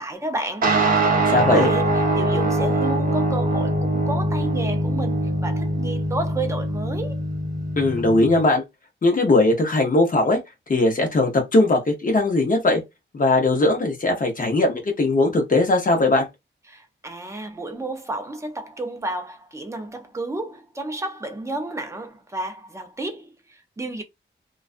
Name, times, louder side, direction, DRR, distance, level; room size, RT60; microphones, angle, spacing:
voice 1, 0.0-7.2 16.7-24.0, right 2 dB, 15° right, 0.5 m, -31 dB
sound 1, 0.6-8.4, right 1 dB, 45° right, 0.8 m, -22 dB
voice 2, 1.3-1.7 7.8-8.6 9.0-10.4 10.7-12.8 13.1-16.3, left 2 dB, 40° left, 0.8 m, -19 dB
2.4 x 2.2 x 2.4 m
wide cardioid pair, 175°, 21 cm